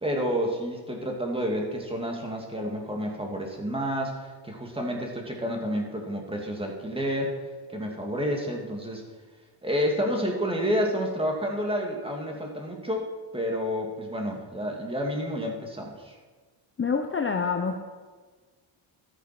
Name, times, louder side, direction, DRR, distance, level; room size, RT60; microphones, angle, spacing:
voice 1, 0.0-7.4 7.7-9.0 9.6-13.1 13.3-16.2, equal, 10° right, 1 dB, 2.6 m, -29 dB
voice 2, 16.8-17.8, left 5 dB, 25° left, 4 dB, 1.0 m, -26 dB
14.0 x 13.5 x 6.1 m, 1.4 s
cardioid pair, 150°, 50 cm